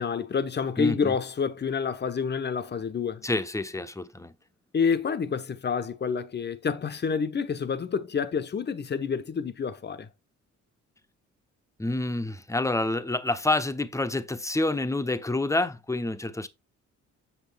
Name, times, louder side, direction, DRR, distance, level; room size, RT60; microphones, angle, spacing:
voice 1, 0.0-3.3 4.7-10.1, left 6 dB, 35° left, 1.0 m, -28 dB
voice 2, 0.8-1.1 3.2-4.3 11.8-16.5, left 2 dB, 10° left, 1.0 m, -28 dB
8.4 x 6.2 x 3.5 m
cardioid pair, 90°, 30 cm